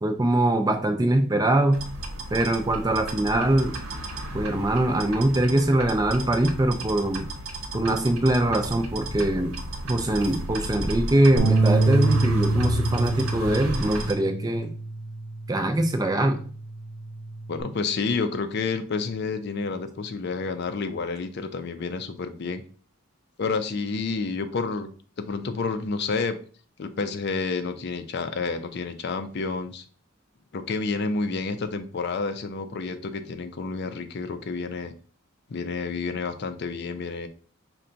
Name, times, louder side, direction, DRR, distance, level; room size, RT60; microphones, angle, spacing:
voice 1, 0.0-1.8 2.3-3.7 4.3-7.3 7.7-9.5 9.9-14.7 15.5-16.4, right 1 dB, 20° right, 6 dB, 0.4 m, -22 dB
sound 1, 1.7-14.1, right 1 dB, 80° right, 0.9 m, -34 dB
sound 2, 11.4-17.6, right 2 dB, 55° right, 1.0 m, -26 dB
voice 2, 17.5-22.6 23.4-24.9 25.2-26.4 26.8-29.9 30.5-34.9 35.5-37.3, left 4 dB, 50° left, 9 dB, 0.4 m, -29 dB
5.5 x 2.2 x 3.9 m, 0.42 s
head